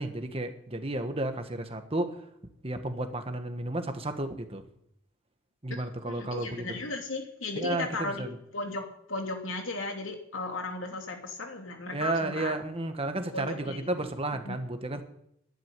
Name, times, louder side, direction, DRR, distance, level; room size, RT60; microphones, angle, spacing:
voice 1, 0.0-2.2 2.6-4.6 5.6-6.8 7.6-8.4 11.9-15.0, right 2 dB, 30° right, 7 dB, 1.5 m, -32 dB
voice 2, 6.1-8.3 8.5-12.5 13.3-14.1 14.4-14.6, left 2 dB, 85° left, 2 dB, 3.0 m, -36 dB
11.5 x 10.5 x 9.4 m, 0.74 s
head